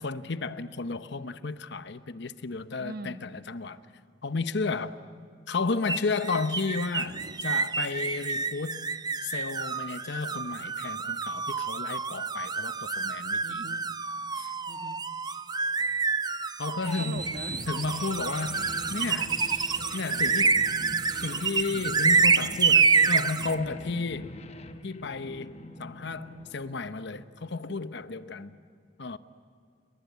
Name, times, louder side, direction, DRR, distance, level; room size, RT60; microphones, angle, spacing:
voice 1, 0.0-3.8 4.2-5.0 5.5-8.9 9.2-13.6 14.4-14.5 16.6-17.2 17.7-18.7 18.9-19.3 19.9-20.6 21.2-24.4 24.8-28.6 29.0-29.2, left 4 dB, 65° left, 0.8 m, -33 dB
voice 2, 2.8-3.2 7.1-7.4 13.4-13.9 14.7-15.0 17.0-17.6, right 2 dB, 55° right, 1.3 m, -41 dB
sound 1, 5.9-23.6, right 5 dB, 20° right, 0.6 m, -28 dB
sound 2, 16.8-27.3, left 2 dB, 35° left, 1.1 m, -43 dB
29.0 x 22.0 x 8.2 m
head